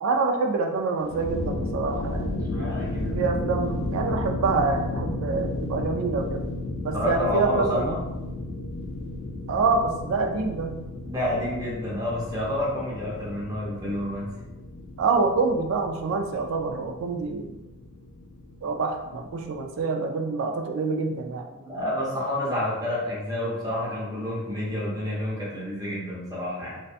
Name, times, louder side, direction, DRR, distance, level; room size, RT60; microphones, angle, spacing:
voice 1, 0.0-2.4 3.1-6.5 6.8-7.8 9.5-10.8 15.0-17.6 18.6-21.5, right 4 dB, 70° right, 4 dB, 0.3 m, -26 dB
sound 1, 1.0-19.8, left 1 dB, 65° left, 0.4 m, -33 dB
voice 2, 2.5-3.2 6.9-8.0 11.0-14.3 21.5-26.8, left 1 dB, 20° right, -6 dB, 0.7 m, -29 dB
2.6 x 2.2 x 2.4 m, 1.0 s
head